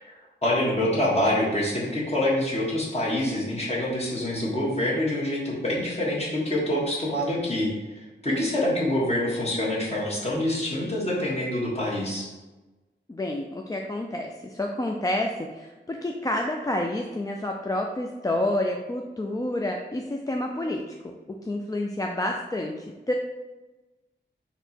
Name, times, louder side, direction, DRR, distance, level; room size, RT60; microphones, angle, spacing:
voice 1, 0.4-12.3, left 1 dB, 35° left, -5 dB, 1.4 m, -26 dB
voice 2, 8.3-8.7 13.1-21.1 21.4-23.1, left 1 dB, 20° left, 1 dB, 0.3 m, -29 dB
4.2 x 2.9 x 4.2 m, 1.2 s
wide cardioid pair, 95°, 19 cm